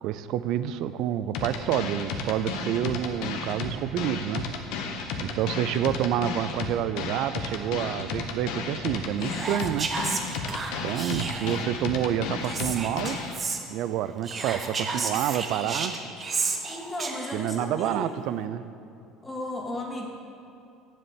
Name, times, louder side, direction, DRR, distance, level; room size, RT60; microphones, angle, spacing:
voice 1, 0.0-4.5 5.2-9.9 10.8-13.2 13.7-15.9 17.3-18.6, right 11 dB, 60° right, 13 dB, 0.5 m, -28 dB
sound 1, 1.3-13.3, left 4 dB, 65° left, 1.1 m, -33 dB
Whispering, 9.2-11.7 12.4-13.6 14.2-17.5, right 4 dB, 35° right, 1.1 m, -32 dB
voice 2, 16.7-18.1 19.2-20.1, left 1 dB, 15° left, -2 dB, 2.2 m, -35 dB
7.7 x 7.6 x 8.3 m, 2.7 s
hypercardioid pair, 70°, 0 cm